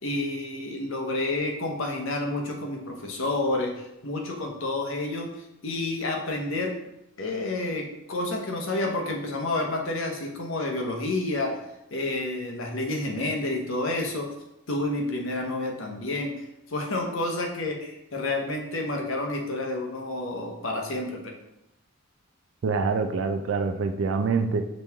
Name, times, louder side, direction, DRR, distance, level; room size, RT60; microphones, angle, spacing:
voice 1, 0.0-6.8 7.2-11.6 11.9-14.3 14.7-21.3, left 2 dB, 65° left, 1 dB, 0.8 m, -29 dB
voice 2, 22.6-24.7, right 4 dB, 60° right, 6 dB, 0.3 m, -25 dB
5.2 x 3.0 x 3.5 m, 0.87 s
head